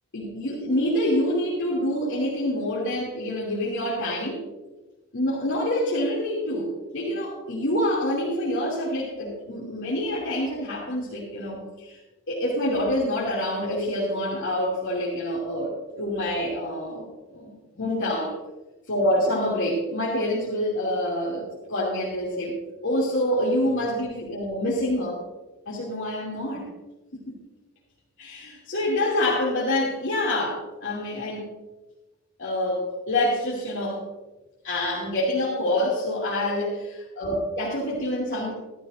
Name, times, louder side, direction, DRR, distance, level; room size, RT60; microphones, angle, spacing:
voice 1, 0.1-4.4 5.1-12.0 12.3-18.3 18.9-22.6 22.8-25.2 25.7-26.7 27.1-27.3 28.2-31.5 32.4-34.0 34.6-38.5, left 1 dB, 55° left, -6 dB, 2.8 m, -26 dB
15.0 x 14.0 x 2.6 m, 1.1 s
head